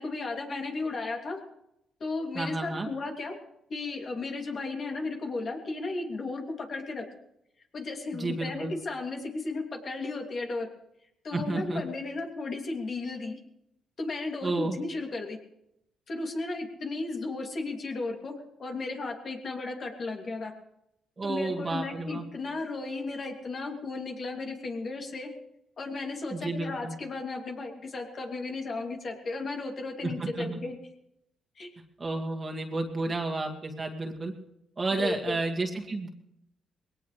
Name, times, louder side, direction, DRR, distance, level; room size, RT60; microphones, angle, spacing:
voice 1, 0.0-1.4 2.0-3.4 3.7-7.1 7.7-10.7 11.2-13.4 14.0-15.4 16.1-20.5 21.2-25.3 25.8-30.8 31.6-31.7 35.0-35.4, left 3 dB, 45° left, 1 dB, 2.9 m, -34 dB
voice 2, 2.3-2.9 8.1-8.8 11.3-11.8 14.4-14.8 21.2-22.2 26.3-27.0 30.0-30.6 32.0-34.3 34.8-36.1, right 2 dB, 30° right, 1 dB, 2.1 m, -31 dB
20.5 x 18.0 x 3.4 m, 0.82 s
cardioid pair, 90°, 0 cm